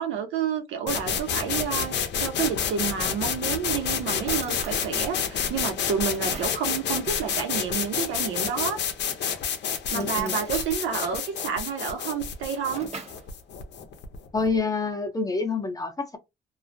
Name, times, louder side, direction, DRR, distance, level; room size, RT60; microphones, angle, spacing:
voice 1, 0.0-8.8 9.2-9.4 9.9-12.9, right 7 dB, 85° right, 0.8 m, -30 dB
sound 1, 0.9-14.6, left 7 dB, 60° left, 0.6 m, -29 dB
Drawer open or close, 2.4-3.3 3.9-4.0 4.3-4.9 5.6-6.7 8.5-9.1 9.8-10.8 12.2-13.3, right 4 dB, 35° right, 0.7 m, -42 dB
voice 2, 9.9-10.4 14.3-16.2, left 4 dB, 20° left, 0.7 m, -27 dB
2.4 x 2.0 x 2.6 m
cardioid pair, 90°, 20 cm